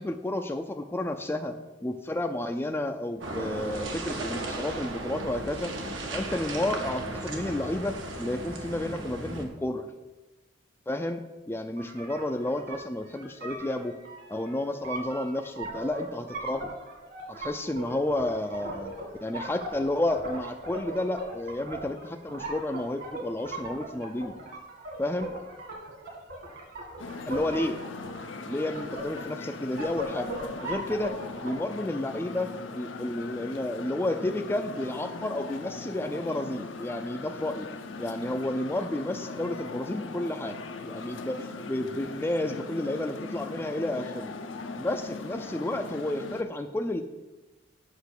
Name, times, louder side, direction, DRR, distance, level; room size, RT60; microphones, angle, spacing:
voice 1, 0.0-1.6 1.8-5.7 6.1-9.9 10.9-14.0 14.3-16.7 17.3-18.9 19.2-24.3 25.0-25.4 27.3-27.8 28.5-30.3 30.6-37.7 38.0-40.6 40.8-44.3 44.8-47.0, left 1 dB, 10° left, 4 dB, 0.4 m, -31 dB
sound 1, 3.2-9.5, right 2 dB, 80° right, 1.5 m, -35 dB
sound 2, 11.8-31.5, right 1 dB, 60° right, 2.1 m, -39 dB
sound 3, 27.0-46.4, left 3 dB, 75° left, 0.7 m, -40 dB
8.1 x 5.7 x 6.6 m, 1.1 s
head